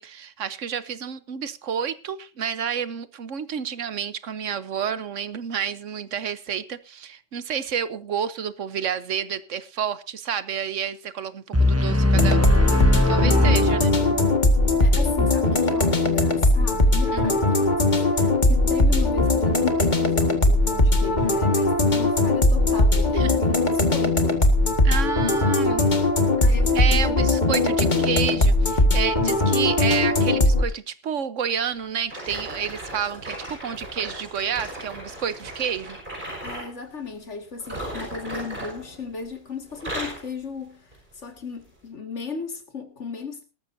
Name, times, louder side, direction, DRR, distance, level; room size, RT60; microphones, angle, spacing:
voice 1, 0.0-12.4 12.7-12.8 13.1-14.0 17.1-17.4 23.1-23.3 24.8-26.0 26.5-36.0, right 8 dB, 75° right, 1.3 m, -30 dB
sound 1, 11.5-14.5, left 2 dB, 10° right, 1.2 m, -20 dB
sound 2, 12.1-30.6, left 2 dB, 35° left, 1.8 m, -20 dB
voice 2, 14.8-24.5 26.4-28.2 36.4-40.9 41.1-43.5, left 5 dB, 65° left, 2.3 m, -35 dB
sound 3, 32.1-36.7 37.6-39.4 39.7-40.3 40.9-41.1 41.8-41.9, right 1 dB, 40° right, 5.7 m, -36 dB
19.0 x 13.5 x 2.7 m
omnidirectional pair, 1.3 m